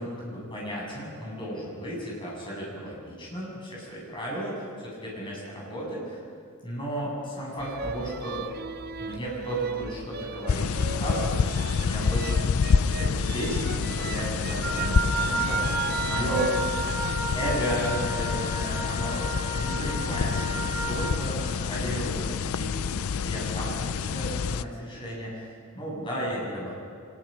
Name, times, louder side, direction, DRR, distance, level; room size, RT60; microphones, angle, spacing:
voice 1, 0.0-6.2 6.6-8.5 9.0-12.5 13.0-15.8 16.0-16.5 17.3-26.7, equal, 25° left, -5 dB, 7.4 m, -34 dB
sound 1, 7.6-17.1, right 5 dB, 45° right, 0.6 m, -37 dB
sound 2, 10.5-24.6, left 5 dB, 70° left, 0.5 m, -28 dB
Wind instrument woodwind instrument, 14.6-21.1, right 2 dB, 70° right, 3.8 m, -32 dB
24.5 x 21.0 x 5.3 m, 2.3 s
head